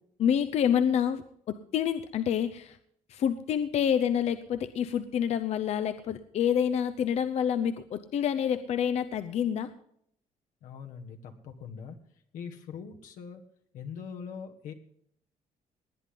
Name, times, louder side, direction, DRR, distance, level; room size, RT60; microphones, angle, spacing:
voice 1, 0.2-2.8 3.1-9.7, left 8 dB, 55° left, 10 dB, 0.7 m, -28 dB
voice 2, 10.6-12.0 12.3-13.4 13.7-14.7, left 6 dB, 80° left, 4 dB, 1.6 m, -42 dB
19.5 x 9.8 x 3.8 m, 0.68 s
cardioid pair, 140°, 13 cm